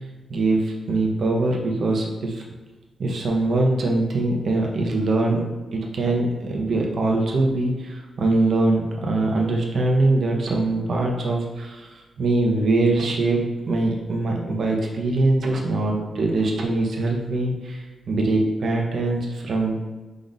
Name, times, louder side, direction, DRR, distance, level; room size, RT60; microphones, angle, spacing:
voice 1, 0.3-2.4 3.0-5.4 5.7-19.8, right 2 dB, 55° right, 0 dB, 0.8 m, -22 dB
5.0 x 2.5 x 4.0 m, 1.3 s
wide cardioid pair, 150°, 0 cm